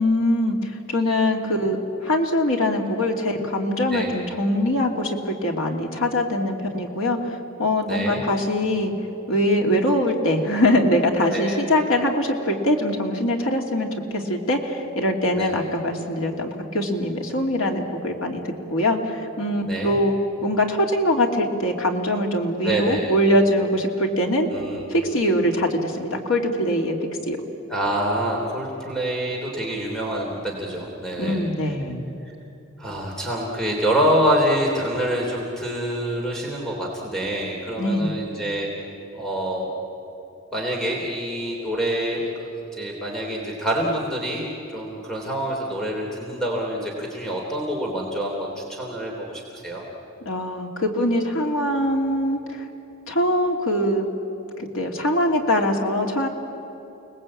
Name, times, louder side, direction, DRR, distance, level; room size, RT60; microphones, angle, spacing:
voice 1, 0.0-8.9 9.3-18.4 18.7-20.1 20.4-24.5 24.9-26.9 27.3-27.4 31.2-32.0 37.8-38.2 50.2-52.6 53.1-54.1 54.6-56.3, left 1 dB, 80° left, 2 dB, 2.8 m, -22 dB
voice 2, 7.9-8.2 11.3-11.5 15.3-15.5 19.7-20.0 22.6-23.1 24.5-24.8 27.7-31.4 32.2-32.3 32.8-38.7 39.1-39.7 40.5-44.5 44.7-49.8, right 1 dB, 5° left, -2 dB, 3.2 m, -26 dB
29.5 x 19.5 x 8.7 m, 3.0 s
head